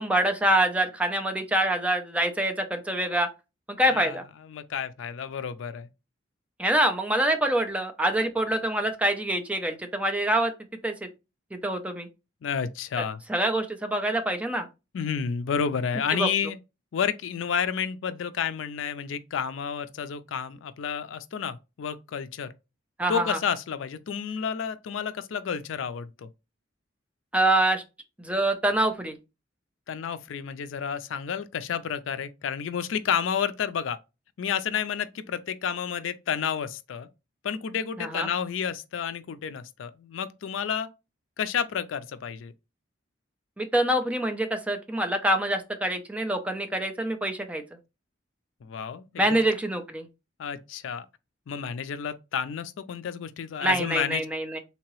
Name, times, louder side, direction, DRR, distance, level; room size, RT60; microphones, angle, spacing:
voice 1, 0.0-3.3 3.7-4.2 6.6-10.5 10.8-11.1 11.5-12.1 13.3-14.7 16.1-16.3 23.0-23.4 27.3-27.8 28.2-29.2 38.0-38.3 43.6-47.6 49.2-50.1 53.6-54.6, right 1 dB, 5° right, 0.5 m, -25 dB
voice 2, 3.9-5.9 12.4-13.2 14.9-16.6 16.9-22.5 23.1-26.3 29.9-34.0 34.4-37.1 37.4-40.9 41.4-42.5 48.6-49.4 50.4-51.1 51.5-54.2, left 7 dB, 70° left, 0.4 m, -30 dB
3.6 x 2.8 x 3.0 m
head